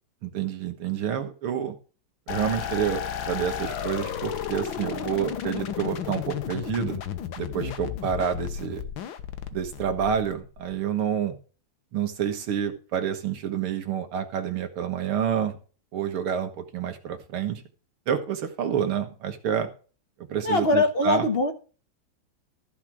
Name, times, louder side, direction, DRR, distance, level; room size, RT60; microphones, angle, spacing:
voice 1, 0.2-1.8 2.3-7.0 7.4-8.8 9.5-11.3 11.9-15.6 15.9-17.6 18.1-19.7 20.3-21.3, right 8 dB, 85° right, 7 dB, 2.3 m, -28 dB
sound 1, 2.3-10.7, left 9 dB, 70° left, 1.7 m, -33 dB
voice 2, 20.4-21.5, left 2 dB, 35° left, 7 dB, 1.3 m, -22 dB
14.5 x 4.9 x 6.1 m, 0.37 s
omnidirectional pair, 2.3 m